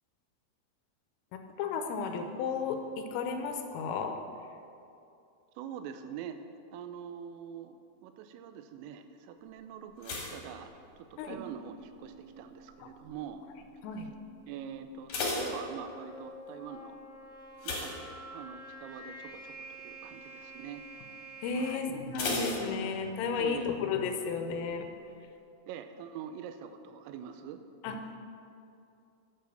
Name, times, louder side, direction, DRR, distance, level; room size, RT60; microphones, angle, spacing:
voice 1, 1.6-4.2 11.2-11.4 12.8-12.9 13.8-14.1 21.4-24.9 27.8-28.2, left 5 dB, 90° left, 6 dB, 3.5 m, -33 dB
voice 2, 5.6-6.4 6.7-13.4 14.5-17.0 17.6-20.8 21.6-22.0 23.4-23.7 25.7-27.6, right 8 dB, 90° right, 9 dB, 3.3 m, -44 dB
sound 1, 10.0-11.5 11.7-12.3 12.9-13.2 13.5-13.6 14.0-14.1 14.8-16.3 17.6-18.7 19.1-19.3 19.7-19.8 22.1-23.4 23.6-23.7, left 2 dB, 55° left, 2.3 m, -36 dB
sound 2, 12.0-21.7, right 1 dB, 70° right, 1.4 m, -49 dB
9.3 x 7.6 x 6.5 m, 2.6 s
omnidirectional pair, 5.8 m